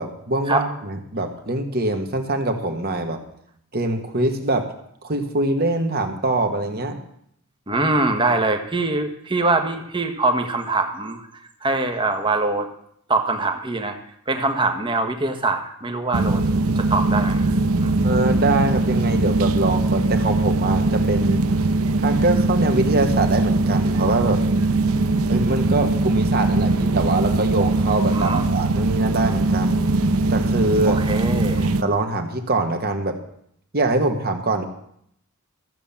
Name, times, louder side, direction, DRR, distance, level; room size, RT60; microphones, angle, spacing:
voice 1, 0.0-3.2 3.7-4.7 5.0-7.0 18.0-21.4 22.0-24.4 25.3-29.8 30.3-31.0 31.6-33.2 33.7-34.7, right 2 dB, 45° right, 5 dB, 1.5 m, -23 dB
voice 2, 7.7-11.3 11.6-12.7 13.1-14.0 14.3-16.4 16.7-17.5 17.8-18.0 28.1-28.4 30.8-31.7, right 2 dB, 25° right, 5 dB, 1.3 m, -23 dB
sound 1, 16.1-31.8, right 2 dB, 85° right, 0.7 m, -21 dB
14.0 x 7.2 x 7.2 m, 0.71 s
head